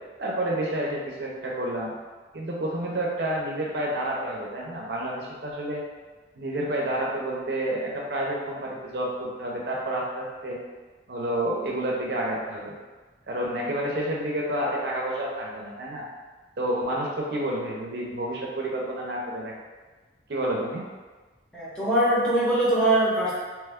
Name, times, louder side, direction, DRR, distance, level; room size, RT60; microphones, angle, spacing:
voice 1, 0.2-1.9 2.3-5.8 6.4-10.6 11.1-12.7 13.3-16.0 16.6-19.5 20.3-20.8, right 1 dB, 65° right, -3 dB, 0.6 m, -29 dB
voice 2, 21.5-23.3, right 1 dB, 5° left, -9 dB, 0.7 m, -22 dB
3.0 x 2.2 x 3.5 m, 1.3 s
head